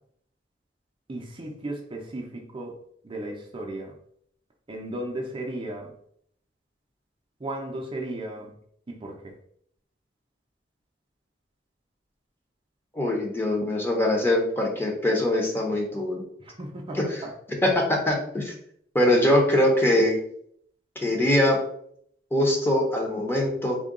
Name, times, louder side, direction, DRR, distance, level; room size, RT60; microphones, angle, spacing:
voice 1, 1.1-2.8 3.0-3.9 4.7-5.9 7.4-8.5 8.9-9.3 16.4-17.3, right 1 dB, 30° right, 1 dB, 0.5 m, -35 dB
voice 2, 12.9-16.2 16.9-17.2 17.6-18.5 18.9-20.2 21.0-21.6 22.3-23.8, left 1 dB, 15° left, 0 dB, 0.7 m, -22 dB
3.6 x 2.2 x 3.6 m, 0.67 s
head